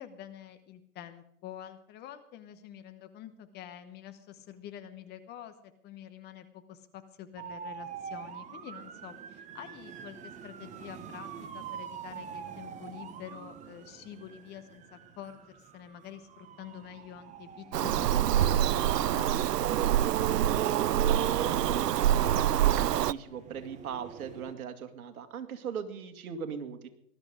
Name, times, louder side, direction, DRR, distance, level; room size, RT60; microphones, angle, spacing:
voice 1, 0.0-5.5 5.8-19.3, left 10 dB, 20° left, 10 dB, 1.0 m, -47 dB
sound 1, 7.4-24.5, right 7 dB, 15° right, 1.1 m, -47 dB
Bird vocalization bird call bird song, 17.7-23.1, right 11 dB, 80° right, 0.6 m, -26 dB
voice 2, 19.9-26.9, right 7 dB, 60° right, 8 dB, 2.2 m, -39 dB
19.5 x 12.5 x 5.0 m, 0.74 s
hypercardioid pair, 125°, 48 cm